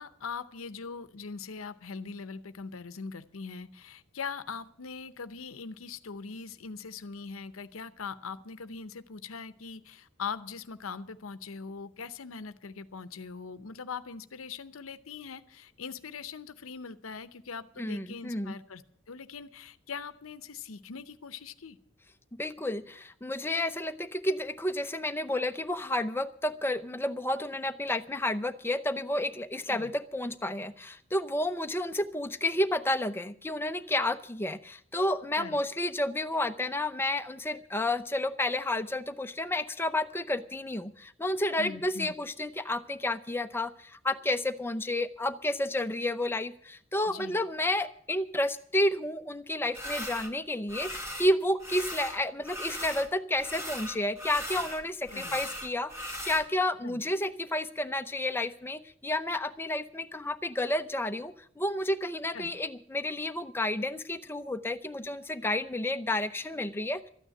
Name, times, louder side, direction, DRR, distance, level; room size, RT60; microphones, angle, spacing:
voice 1, 0.0-18.8 19.1-21.8 29.7-29.9 35.4-35.6 41.6-42.1 47.1-47.4 55.1-55.4 56.8-57.0 62.3-62.5, left 5 dB, 85° left, 12 dB, 0.7 m, -41 dB
voice 2, 17.8-18.6 22.4-67.1, left 1 dB, 10° left, 9 dB, 0.7 m, -31 dB
sound 1, 49.7-50.3 50.7-51.3 51.6-53.1 53.4-56.4, equal, 15° right, 1.8 m, -38 dB
13.5 x 9.2 x 8.9 m, 0.62 s
head